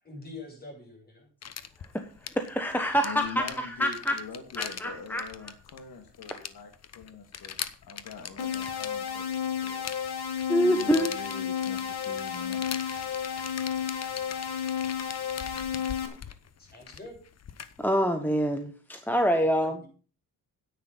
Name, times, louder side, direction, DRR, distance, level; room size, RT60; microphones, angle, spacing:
voice 1, 0.0-1.3 16.6-17.2 19.4-19.9, left 2 dB, 25° left, 0 dB, 7.2 m, -45 dB
sound 1, 1.4-17.9, left 7 dB, 45° left, 1.0 m, -42 dB
voice 2, 2.5-3.4 3.8-4.2 4.6-5.2 10.5-11.1 17.8-19.8, equal, 5° left, 6 dB, 1.2 m, -25 dB
voice 3, 3.0-7.6 7.9-9.9 10.2-10.3 10.6-12.6, left 5 dB, 70° left, 5 dB, 2.4 m, -44 dB
sound 2, 8.4-16.1, left 8 dB, 90° left, 2.3 m, -32 dB
10.0 x 9.6 x 5.5 m, 0.37 s
cardioid pair, 120°, 37 cm